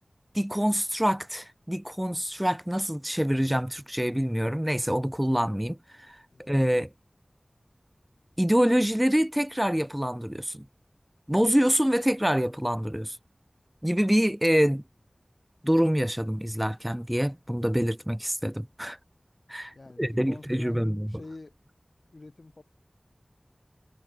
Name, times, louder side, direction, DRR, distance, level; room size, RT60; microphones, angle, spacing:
voice 1, 0.3-6.9 8.4-10.6 11.3-13.2 13.8-14.8 15.6-19.0 19.5-21.2, equal, 10° right, 0.6 m, -26 dB
voice 2, 19.7-21.5 22.1-22.6, left 2 dB, 70° left, 5.4 m, -46 dB
wide cardioid pair, 50°, 0 cm